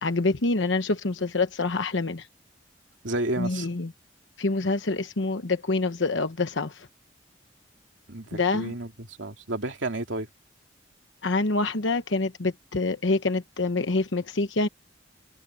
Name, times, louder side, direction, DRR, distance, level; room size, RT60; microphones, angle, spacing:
voice 1, 0.0-2.3 3.4-3.9 4.4-6.9 8.3-8.7 11.2-14.7, left 3 dB, 80° left, 1.0 m, -26 dB
voice 2, 3.0-3.7 8.1-8.9 9.2-10.3, right 2 dB, 85° right, 2.7 m, -31 dB
head